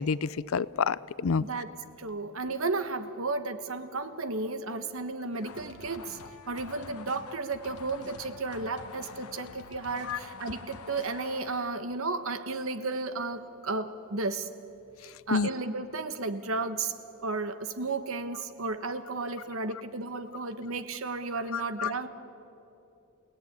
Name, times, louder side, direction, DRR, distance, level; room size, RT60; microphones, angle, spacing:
voice 1, 0.0-1.4 10.0-10.2 15.0-15.5 21.5-21.9, left 5 dB, 65° left, 19 dB, 0.5 m, -29 dB
voice 2, 1.4-1.7 2.0-6.2 6.5-14.5 15.3-17.0 17.2-22.1, right 3 dB, 65° right, 10 dB, 1.3 m, -33 dB
sound 1, 5.3-11.9, left 4 dB, 85° left, 1.1 m, -47 dB
29.0 x 17.5 x 9.4 m, 2.9 s
head